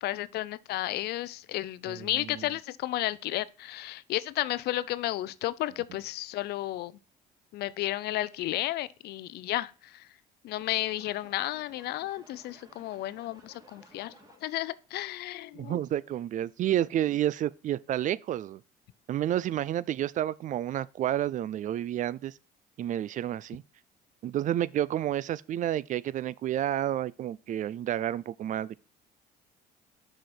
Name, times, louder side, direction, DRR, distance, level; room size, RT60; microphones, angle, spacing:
voice 1, 0.0-6.9 7.5-10.1 10.4-14.1 14.4-15.8, left 15 dB, 75° left, 0.5 m, -33 dB
voice 2, 1.9-2.5 15.5-18.6 19.1-22.3 22.8-23.6 24.2-28.8, right 12 dB, 50° right, 0.4 m, -30 dB
sound 1, 10.6-14.7, right 2 dB, 20° right, 2.6 m, -57 dB
6.2 x 5.1 x 4.2 m
cardioid pair, 110°, 17 cm